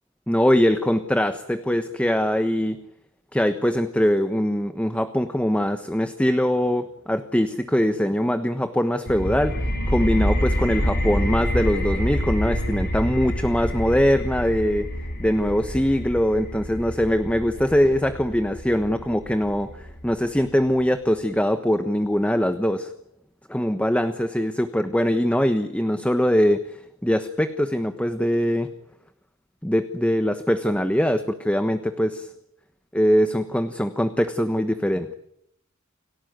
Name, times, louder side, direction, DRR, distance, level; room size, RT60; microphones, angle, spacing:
voice 1, 0.3-2.8 3.3-9.6 9.9-14.9 15.2-22.9 23.5-28.7 29.6-32.3 32.9-35.1, equal, 5° left, 9 dB, 1.2 m, -22 dB
sound 1, 9.1-20.5, equal, 50° left, 5.0 m, -27 dB
29.5 x 19.0 x 9.4 m, 0.77 s
head